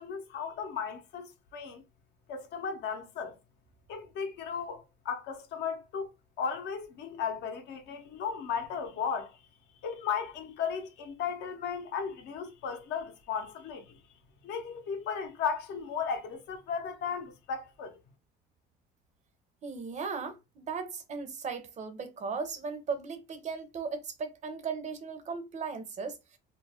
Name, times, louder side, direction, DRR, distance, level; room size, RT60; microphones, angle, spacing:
voice 1, 0.0-1.8 2.3-3.4 3.9-6.1 6.4-9.4 9.8-14.0 14.4-17.9, left 6 dB, 60° left, 0.7 m, -35 dB
voice 2, 19.6-26.2, right 5 dB, 35° right, 0.6 m, -37 dB
2.4 x 2.0 x 3.4 m
cardioid pair, 110°, 20 cm